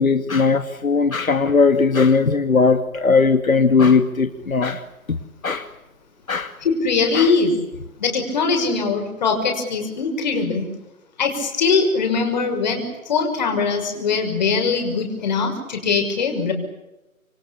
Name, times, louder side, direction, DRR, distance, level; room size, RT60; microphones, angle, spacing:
voice 1, 0.0-4.8 5.4-5.7 6.3-6.5 7.1-7.3, left 4 dB, 70° left, 8 dB, 2.4 m, -18 dB
voice 2, 6.6-7.5 8.0-10.7 11.2-16.5, left 4 dB, 30° left, 4 dB, 6.2 m, -21 dB
28.0 x 22.5 x 8.5 m, 0.98 s
figure-of-eight pair, 165°, 43 cm